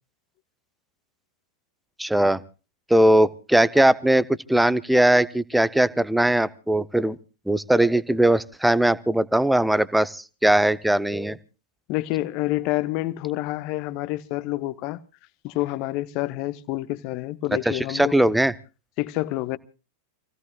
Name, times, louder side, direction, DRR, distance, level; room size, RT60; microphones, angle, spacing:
voice 1, 2.0-2.4 2.9-7.2 7.5-11.4 17.7-18.5, right 1 dB, 5° right, 0.7 m, -20 dB
voice 2, 11.9-15.0 15.4-18.2 19.0-19.6, left 17 dB, 45° left, 1.0 m, -28 dB
28.5 x 16.5 x 2.3 m
figure-of-eight pair, 90°, 0 cm